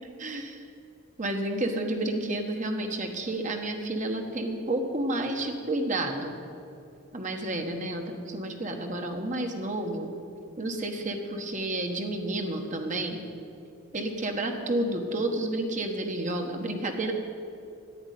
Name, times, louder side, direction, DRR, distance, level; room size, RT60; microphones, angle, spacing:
voice 1, 0.2-0.7 1.2-6.4 7.1-10.1 10.6-13.2 13.9-17.1, right 1 dB, 35° right, 4 dB, 1.3 m, -30 dB
11.0 x 8.9 x 10.0 m, 2.7 s
head